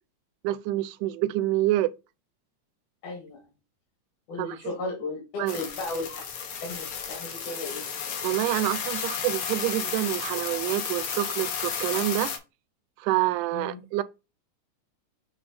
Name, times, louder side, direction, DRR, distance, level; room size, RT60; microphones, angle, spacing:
voice 1, 0.4-1.9 4.4-4.6 5.4-5.6 8.2-12.3 13.0-14.0, right 15 dB, 85° right, 2.1 m, -27 dB
voice 2, 3.0-3.4 4.3-6.2 6.6-7.9 13.5-13.9, left 3 dB, 80° left, 3.0 m, -35 dB
sound 1, 5.5-12.4, left 6 dB, 60° left, 1.5 m, -33 dB
6.9 x 3.3 x 4.1 m
omnidirectional pair, 3.6 m